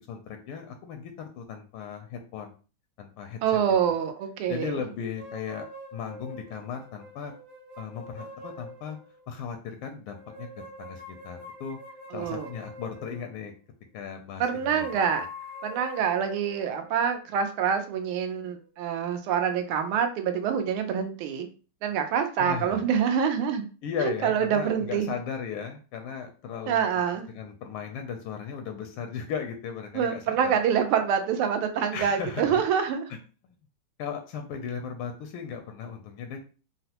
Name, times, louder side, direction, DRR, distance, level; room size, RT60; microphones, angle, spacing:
voice 1, 0.0-2.5 3.0-3.4 4.5-7.3 7.8-9.0 9.3-10.5 10.8-11.8 12.1-13.5 13.9-14.9 22.4-22.8 23.8-26.9 27.3-30.6 31.9-32.6 34.0-36.4, left 7 dB, 85° left, 5 dB, 1.4 m, -36 dB
voice 2, 3.4-4.9 12.1-12.5 14.4-15.3 15.6-21.5 21.8-23.7 24.0-25.2 26.7-27.3 29.9-33.1, right 7 dB, 85° right, 6 dB, 1.5 m, -26 dB
sound 1, 5.1-9.3 10.1-13.5 14.3-18.7, left 1 dB, 60° right, 1.4 m, -45 dB
4.1 x 2.0 x 2.8 m, 0.36 s
omnidirectional pair, 2.3 m